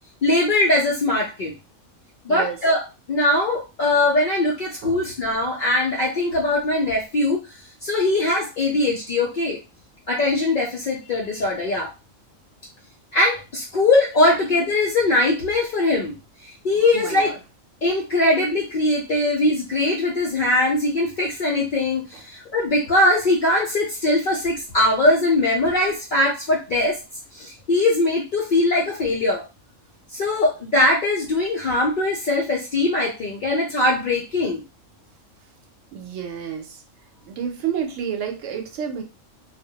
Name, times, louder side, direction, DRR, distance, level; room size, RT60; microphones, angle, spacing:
voice 1, 0.2-1.5 2.2-2.8 3.1-7.4 7.8-9.6 10.1-11.9 13.1-16.1 16.4-17.3 17.8-27.0 27.3-29.5 30.1-34.6, left 2 dB, 65° left, -2 dB, 0.5 m, -21 dB
voice 2, 16.7-17.4 35.9-36.8 37.2-39.0, right 8 dB, 70° right, 4 dB, 0.9 m, -30 dB
2.3 x 2.1 x 2.7 m, 0.28 s
omnidirectional pair, 1.4 m